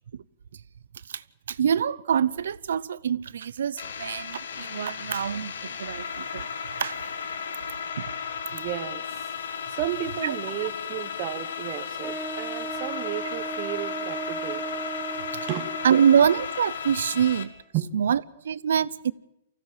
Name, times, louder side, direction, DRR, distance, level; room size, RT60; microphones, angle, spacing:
voice 1, 1.1-6.5 6.8-7.0 8.0-8.1 10.2-10.3 15.3-15.5 15.8-17.5 17.9-19.1, right 8 dB, 85° right, 0.7 m, -25 dB
sound 1, 3.8-17.4, left 7 dB, 85° left, 1.7 m, -35 dB
voice 2, 8.5-14.6 15.5-15.7 17.7-17.9, right 12 dB, 35° right, 1.3 m, -33 dB
Wind instrument woodwind instrument, 12.0-16.4, right 4 dB, ahead, 1.3 m, -36 dB
24.5 x 16.0 x 7.4 m
hypercardioid pair, 150°, 0 cm